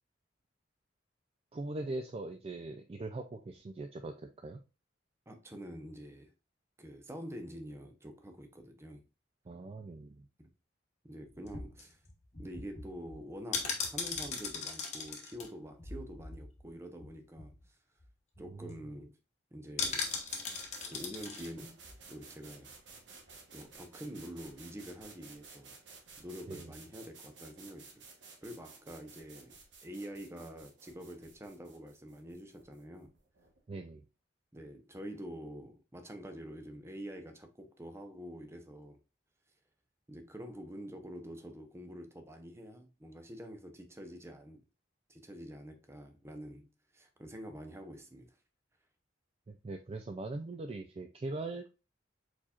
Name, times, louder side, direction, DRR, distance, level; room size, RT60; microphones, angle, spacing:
voice 1, 1.5-4.6 9.5-10.3 18.4-18.7 26.5-26.7 33.7-34.0 49.5-51.7, right 2 dB, 30° right, 0.4 m, -41 dB
voice 2, 5.3-6.3 6.8-9.0 10.4-10.5 11.0-12.0 12.4-17.8 18.4-19.2 19.5-20.1 20.8-21.8 22.1-22.8 23.5-25.7 26.2-28.0 28.4-33.1 34.5-39.0 40.1-44.6 45.1-48.4, equal, 15° right, 0.7 m, -47 dB
sound 1, 11.4-16.7 17.0-17.1 17.4-17.6 18.0-18.1 18.3-18.7 19.8-21.5 21.8-22.0, left 5 dB, 40° left, 1.1 m, -39 dB
sound 2, 19.9-33.6, right 4 dB, 70° right, 1.1 m, -55 dB
4.6 x 4.3 x 2.4 m
head